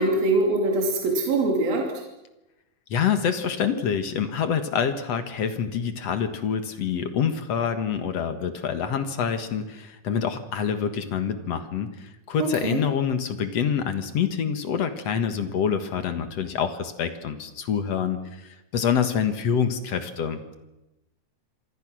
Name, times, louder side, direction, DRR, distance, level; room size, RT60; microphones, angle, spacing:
voice 1, 0.0-1.9 12.6-12.8, right 2 dB, 65° right, 1 dB, 4.6 m, -23 dB
voice 2, 2.9-20.5, left 7 dB, 55° left, 9 dB, 2.1 m, -26 dB
27.0 x 25.5 x 6.3 m, 0.97 s
omnidirectional pair, 4.5 m